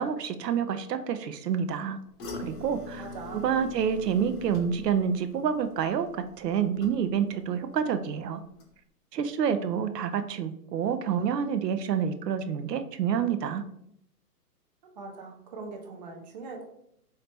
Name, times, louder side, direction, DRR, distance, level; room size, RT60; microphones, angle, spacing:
voice 1, 0.0-2.0 2.4-3.1 3.3-8.4 9.1-13.6, right 7 dB, 80° right, 10 dB, 0.6 m, -28 dB
sound 1, 2.2-7.4 7.7-8.2 8.6-8.7, left 2 dB, 35° left, 0.7 m, -43 dB
voice 2, 3.0-3.5 15.0-16.6, right 3 dB, 30° right, 1 dB, 0.4 m, -41 dB
3.1 x 2.8 x 3.3 m, 0.74 s
hypercardioid pair, 135°, 48 cm